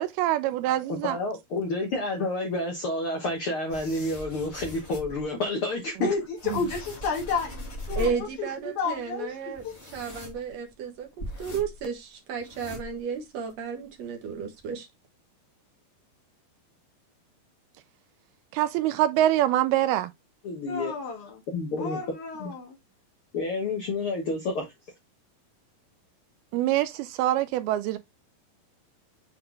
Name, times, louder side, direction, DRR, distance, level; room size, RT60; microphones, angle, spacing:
voice 1, 0.0-1.2 6.5-6.6 18.5-20.1 26.5-28.0, right 13 dB, 80° right, 2.3 m, -24 dB
voice 2, 0.9-6.1 20.4-20.9 21.5-22.0 22.4-22.5 23.3-24.6, left 2 dB, 80° left, 1.2 m, -29 dB
sound 1, 3.7-5.3 6.0-8.3 8.6-8.7 8.9-9.1 9.6-10.7 11.2-11.9 12.3-13.2 13.5-13.6 14.2-14.3 14.6-14.7, left 1 dB, 25° left, 1.7 m, -40 dB
voice 3, 6.0-9.7 20.7-21.4 21.8-22.8, left 4 dB, 55° left, 3.2 m, -31 dB
voice 4, 8.0-11.1 11.4-14.9, right 5 dB, 60° right, 1.8 m, -33 dB
7.8 x 4.0 x 3.2 m
omnidirectional pair, 4.6 m